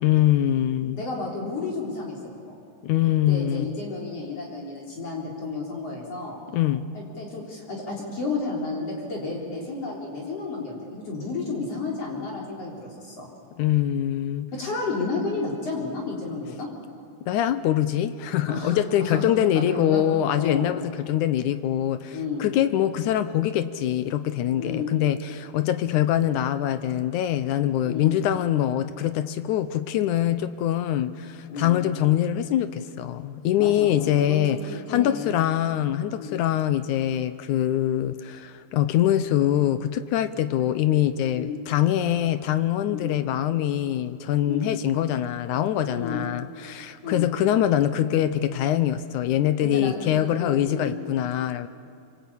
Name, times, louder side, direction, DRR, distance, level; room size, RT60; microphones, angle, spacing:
voice 1, 0.0-1.0 2.8-3.7 6.5-6.9 13.6-14.5 17.3-51.7, left 11 dB, 80° left, 12 dB, 2.2 m, -24 dB
voice 2, 0.9-2.2 2.5-2.6 3.3-6.4 6.9-13.3 14.5-16.7 18.5-19.3 19.5-20.0 20.4-20.7 22.1-22.5 24.6-24.9 27.8-28.2 31.5-31.8 33.6-35.3 36.2-36.4 41.3-41.6 42.9-43.1 44.4-44.7 45.9-46.2 47.0-47.3 49.6-51.0, left 3 dB, 50° left, -2 dB, 4.6 m, -32 dB
25.5 x 25.5 x 8.6 m, 2.3 s
omnidirectional pair, 3.6 m